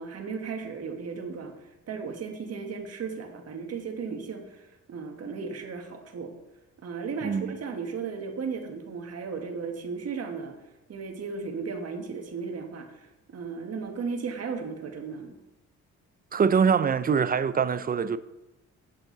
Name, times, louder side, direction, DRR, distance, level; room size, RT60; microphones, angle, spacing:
voice 1, 0.0-1.5 1.9-6.3 6.8-10.5 10.9-15.3, right 5 dB, 55° right, 1.5 m, -35 dB
voice 2, 7.2-7.5 16.3-18.2, right 6 dB, 30° right, 0.4 m, -24 dB
8.5 x 8.1 x 3.9 m
cardioid pair, 90°, 30 cm